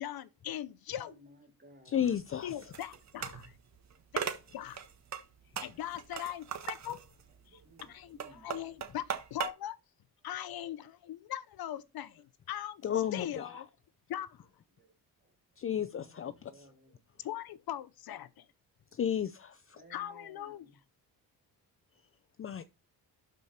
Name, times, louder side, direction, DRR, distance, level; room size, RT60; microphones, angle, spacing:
voice 1, 0.0-1.1 2.4-3.5 4.1-4.8 5.6-7.0 7.5-9.8 10.2-13.7 14.1-14.5 17.2-18.4 19.9-20.7, left 11 dB, 65° left, 0.8 m, -40 dB
voice 2, 1.0-2.2 2.6-2.7 3.4-4.0 7.5-8.6 12.8-13.4 14.7-14.9 15.2-15.3 15.8-17.2 19.7-20.8, right 1 dB, 25° right, 3.3 m, -60 dB
voice 3, 1.9-2.5 12.8-13.5 15.6-16.5 19.0-19.8 22.4-22.6, left 9 dB, 35° left, 0.5 m, -33 dB
sound 1, 2.0-9.5, right 7 dB, 40° right, 1.4 m, -40 dB
12.0 x 4.9 x 4.3 m
cardioid pair, 130°, 40 cm